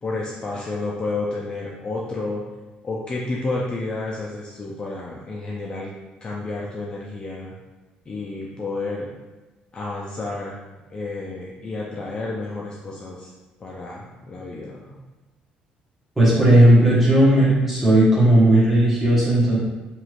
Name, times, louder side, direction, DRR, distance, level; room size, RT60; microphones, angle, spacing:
voice 1, 0.0-2.4 2.8-5.9 6.2-7.5 8.1-9.1 9.7-10.6 10.9-13.3 13.6-15.0, left 2 dB, 30° left, -4 dB, 0.4 m, -30 dB
voice 2, 16.2-19.6, right 1 dB, 10° right, -9 dB, 1.2 m, -15 dB
3.0 x 2.9 x 2.4 m, 1.1 s
cardioid pair, 125°, 3 cm